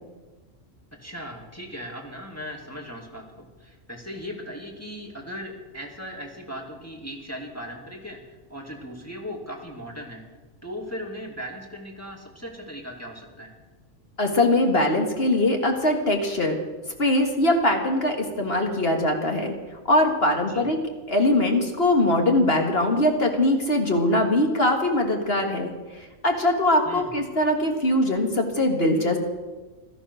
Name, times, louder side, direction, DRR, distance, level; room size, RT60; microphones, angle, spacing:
voice 1, 1.0-8.2 8.5-10.2 10.6-13.5 20.5-20.7 26.8-27.1, equal, 10° left, -1 dB, 2.5 m, -38 dB
voice 2, 14.2-16.6 17.0-19.5 19.9-20.8 21.1-25.7 26.2-29.2, left 1 dB, 50° left, 3 dB, 1.9 m, -22 dB
16.5 x 13.0 x 6.3 m, 1.2 s
omnidirectional pair, 1.4 m